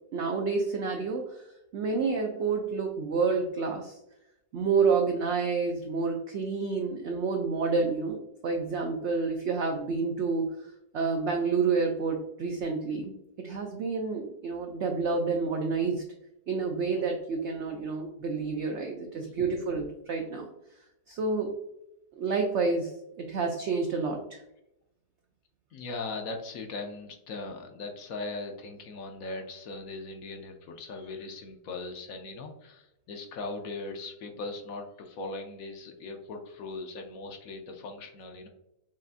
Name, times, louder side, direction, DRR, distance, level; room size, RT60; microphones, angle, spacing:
voice 1, 0.1-1.5 1.7-4.0 4.5-8.2 8.4-10.5 10.9-16.0 16.5-20.5 21.1-21.6 22.2-22.9 23.2-24.4, right 4 dB, 80° right, 3 dB, 0.6 m, -29 dB
voice 2, 25.7-38.5, left 3 dB, 70° left, 4 dB, 0.9 m, -39 dB
5.5 x 2.6 x 2.5 m, 0.87 s
omnidirectional pair, 1.7 m